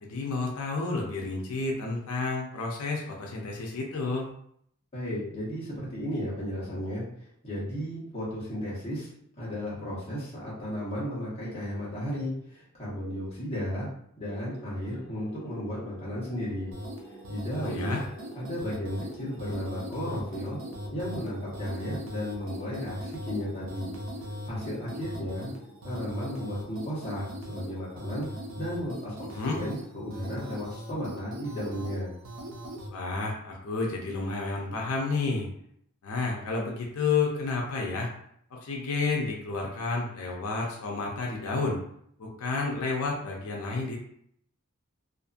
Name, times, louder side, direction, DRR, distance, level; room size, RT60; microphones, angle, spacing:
voice 1, 0.0-4.3 17.6-18.0 29.3-29.6 32.9-35.5 36.0-38.1 38.5-41.8 42.2-44.0, left 3 dB, 90° left, -1 dB, 0.5 m, -30 dB
voice 2, 4.9-7.0 7.4-9.1 9.4-13.9 14.2-16.7 17.3-18.0 18.3-20.6 20.9-23.9 24.5-25.5 25.8-28.3 28.6-32.1, equal, 25° left, -8 dB, 1.1 m, -34 dB
sound 1, 14.3-27.0, equal, 55° left, 0.8 m, -50 dB
sound 2, 16.7-32.9, equal, 85° right, 0.6 m, -40 dB
2.5 x 2.5 x 2.4 m, 0.69 s
head